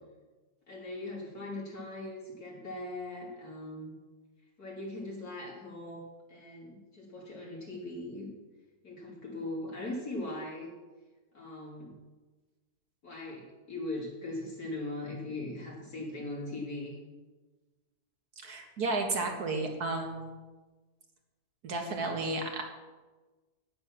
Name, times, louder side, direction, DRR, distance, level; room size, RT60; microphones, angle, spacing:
voice 1, 0.7-3.9 4.6-6.0 6.3-8.3 8.8-10.7 11.3-11.9 13.0-17.0, left 2 dB, 75° left, -3 dB, 3.9 m, -40 dB
voice 2, 18.4-20.3 21.6-22.6, right 3 dB, 80° right, 2 dB, 2.2 m, -32 dB
9.7 x 9.6 x 6.3 m, 1.3 s
omnidirectional pair, 1.6 m